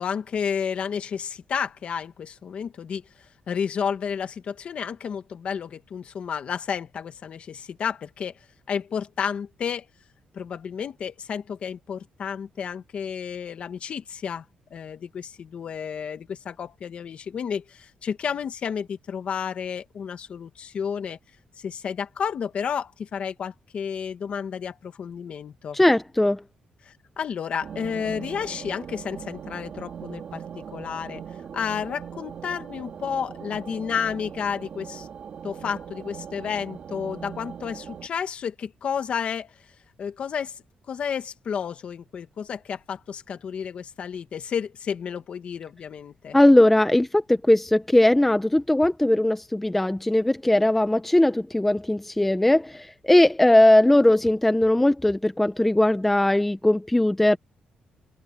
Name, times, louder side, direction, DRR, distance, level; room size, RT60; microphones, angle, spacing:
voice 1, 0.0-3.0 3.5-8.3 8.7-9.8 10.3-14.4 14.7-21.2 21.6-25.8 26.8-31.2 31.5-35.1 35.4-39.5 40.0-40.6 40.9-46.4, left 7 dB, 45° left, 1.6 m, -31 dB
voice 2, 25.7-26.4 46.3-57.4, left 1 dB, 5° left, 0.7 m, -19 dB
sound 1, 27.6-38.1, right 7 dB, 45° right, 2.1 m, -40 dB
open air
cardioid pair, 170°, 3 cm